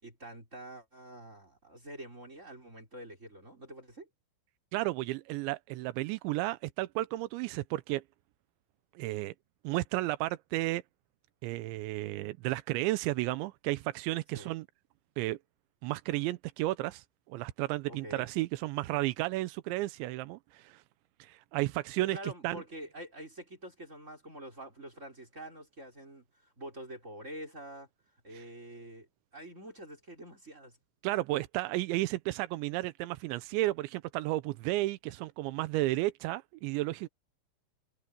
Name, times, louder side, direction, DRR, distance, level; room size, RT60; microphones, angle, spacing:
voice 1, 0.0-4.1 14.3-14.5 17.9-18.3 22.1-27.9 28.2-30.8, right 1 dB, 15° right, 4.1 m, -46 dB
voice 2, 4.7-8.0 9.0-9.3 9.6-10.8 11.4-14.7 15.2-15.4 15.8-20.8 21.2-22.6 28.3-28.4 31.0-37.1, right 18 dB, 90° right, 3.0 m, -33 dB
omnidirectional pair, 5.3 m